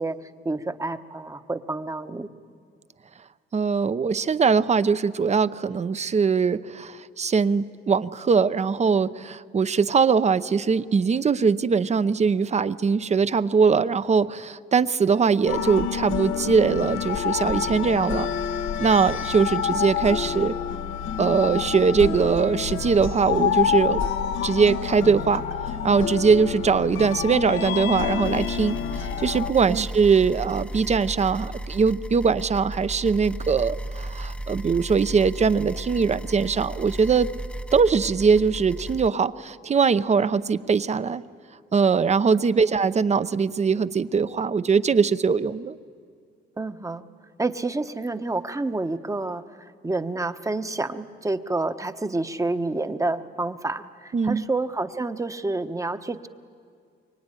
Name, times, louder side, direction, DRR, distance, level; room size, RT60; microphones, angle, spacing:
voice 1, 0.0-2.3 29.7-29.9 42.7-42.8 46.6-47.1 47.4-56.3, right 2 dB, 15° right, 10 dB, 1.1 m, -29 dB
voice 2, 3.5-18.3 18.8-20.6 21.2-24.0 24.4-25.4 25.8-37.3 37.7-41.2 41.7-45.8 54.1-54.4, right 5 dB, 35° right, 14 dB, 0.8 m, -21 dB
sound 1, 15.5-29.5, left 8 dB, 80° left, 1.2 m, -28 dB
sound 2, 28.2-39.1, right 1 dB, 5° left, 0.8 m, -35 dB
24.0 x 23.5 x 9.9 m, 2.2 s
cardioid pair, 90°, 20 cm